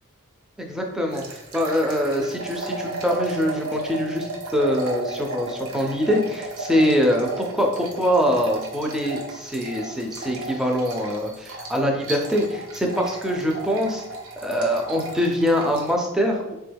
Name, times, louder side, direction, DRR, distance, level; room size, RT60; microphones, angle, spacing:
voice 1, 0.6-14.0 14.4-16.5, equal, 5° right, 1 dB, 0.4 m, -24 dB
sound 1, 1.1-16.0, right 2 dB, 80° right, 0.6 m, -34 dB
3.5 x 2.2 x 3.3 m, 0.89 s
head